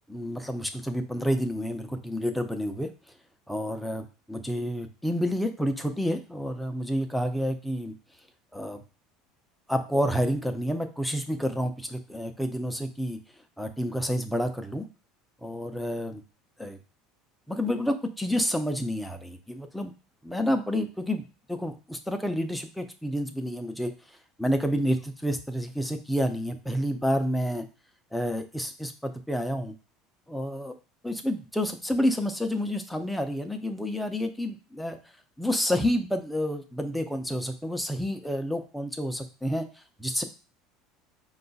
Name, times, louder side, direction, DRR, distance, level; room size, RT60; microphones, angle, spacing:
voice 1, 0.1-2.9 3.5-7.9 8.5-8.8 9.7-13.2 13.6-14.9 15.4-16.2 16.6-16.8 17.5-19.9 20.2-21.2 21.5-23.9 24.4-27.6 28.1-29.7 30.3-30.7 31.0-35.0 35.4-39.6 40.0-40.2, equal, ahead, 6 dB, 0.5 m, -29 dB
4.7 x 2.3 x 3.9 m, 0.33 s
cardioid pair, 145°, 0 cm